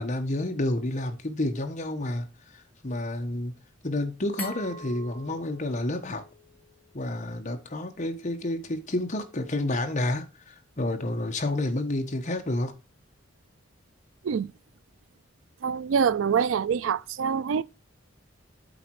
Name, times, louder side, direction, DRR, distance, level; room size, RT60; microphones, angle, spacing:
voice 1, 0.0-2.3 2.8-3.5 3.8-6.2 6.9-12.7, left 1 dB, 40° left, 1.2 m, -29 dB
Glass, 4.4-7.2, left 1 dB, 10° left, 3.3 m, -44 dB
voice 2, 15.6-17.6, right 7 dB, 80° right, 0.4 m, -25 dB
8.3 x 4.2 x 4.7 m
head